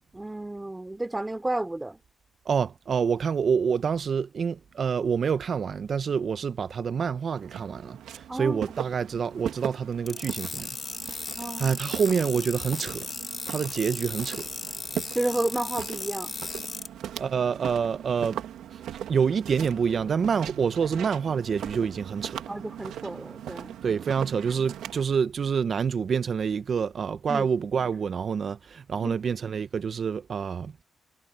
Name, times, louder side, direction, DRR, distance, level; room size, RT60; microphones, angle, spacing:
voice 1, 0.1-2.0 8.3-8.6 11.4-11.7 15.2-16.4 22.5-23.8 27.3-27.5 29.0-29.2, right 2 dB, 15° right, 3.5 m, -31 dB
voice 2, 2.4-10.7 11.6-13.1 13.5-14.5 17.1-18.4 19.1-22.4 23.8-30.7, right 6 dB, 60° right, 1.1 m, -27 dB
Walk footsteps, 7.3-25.0, right 11 dB, 85° right, 2.6 m, -39 dB
sound 1, 10.1-16.9, left 4 dB, 40° left, 2.8 m, -36 dB
supercardioid pair, 60°, 0 cm